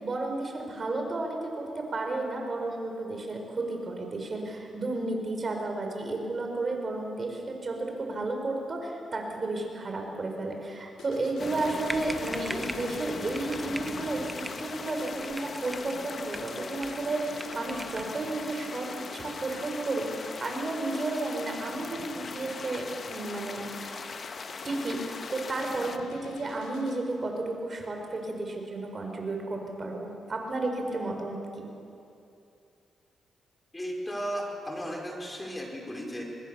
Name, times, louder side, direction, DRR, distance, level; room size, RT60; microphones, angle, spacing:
voice 1, 0.0-24.0 24.6-31.7, right 2 dB, 40° right, 3 dB, 4.7 m, -33 dB
sound 1, 11.0-27.2, left 4 dB, 90° left, 2.4 m, -48 dB
sound 2, 11.4-26.0, left 5 dB, 45° left, 1.1 m, -40 dB
sound 3, 11.9-12.9 13.3-13.9 14.3-14.6 15.0-16.0 16.3-17.1 17.4-18.2, right 2 dB, 15° right, 1.1 m, -40 dB
voice 2, 33.7-36.2, equal, 15° left, 1 dB, 4.5 m, -35 dB
24.5 x 20.5 x 6.9 m, 2.6 s
cardioid pair, 95°, 0 cm